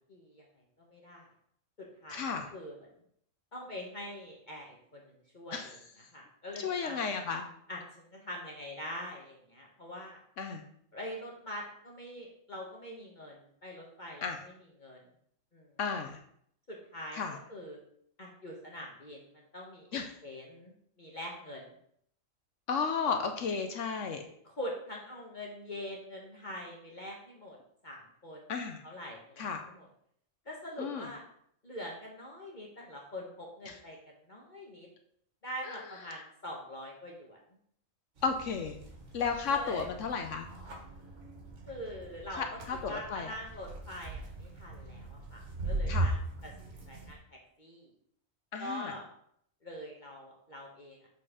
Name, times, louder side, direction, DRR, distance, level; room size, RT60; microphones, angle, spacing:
voice 1, 0.1-0.4 0.8-1.3 1.8-2.8 3.5-5.7 6.1-7.0 7.7-7.8 8.1-10.2 10.9-14.5 14.8-15.0 15.5-15.7 16.7-17.8 18.2-21.7 23.0-23.2 24.4-27.6 27.8-28.4 28.8-29.9 30.4-31.2 31.6-34.9 35.4-37.4 39.5-39.9 41.7-42.4 42.9-46.1 46.4-47.9 48.6-49.1 49.6-51.1, left 1 dB, 35° left, -1 dB, 1.2 m, -44 dB
voice 2, 2.1-2.5 5.5-5.7 6.6-7.4 10.4-10.6 14.2-14.4 15.8-16.2 17.1-17.4 19.9-20.1 22.7-24.2 28.5-28.8 29.4-29.6 30.8-31.1 33.7-33.8 35.6-36.2 38.2-38.8 39.1-40.5 42.3-43.3 45.9-46.1 48.5-48.9, left 5 dB, 70° left, 6 dB, 1.0 m, -34 dB
sound 1, 38.2-47.1, right 2 dB, 60° right, 1.9 m, -39 dB
7.6 x 4.3 x 4.9 m, 0.68 s
omnidirectional pair, 1.4 m